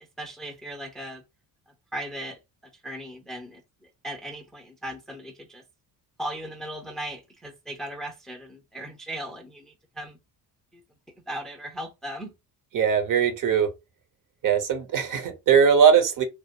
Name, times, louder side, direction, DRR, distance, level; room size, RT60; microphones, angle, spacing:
voice 1, 0.2-1.2 1.9-2.4 2.8-3.6 4.0-5.6 6.2-10.2 10.7-10.8 11.3-12.3, right 1 dB, ahead, 0.5 m, -37 dB
voice 2, 12.7-13.7 14.4-16.2, right 7 dB, 45° right, 0.8 m, -20 dB
2.2 x 2.0 x 2.8 m
hypercardioid pair, 60°, 44 cm